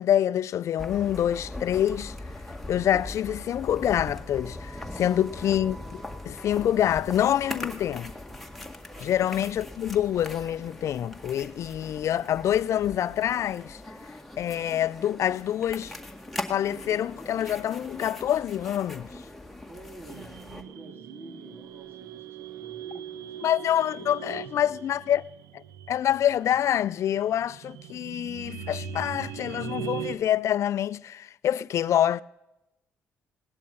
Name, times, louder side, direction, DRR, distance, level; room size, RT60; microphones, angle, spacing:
voice 1, 0.0-2.1 2.7-8.1 9.0-13.8 14.4-15.9 16.5-19.1 23.4-25.2 25.5-25.6 25.9-32.2, left 11 dB, 65° left, 0.4 m, -26 dB
sound 1, 0.8-20.6, left 1 dB, 5° left, 2.0 m, -40 dB
voice 2, 4.8-5.4 8.9-9.1 19.6-24.8, right 2 dB, 45° right, 3.8 m, -49 dB
sound 2, 20.1-30.2, right 8 dB, 90° right, 1.0 m, -40 dB
18.5 x 10.5 x 5.5 m
supercardioid pair, 70°, 5 cm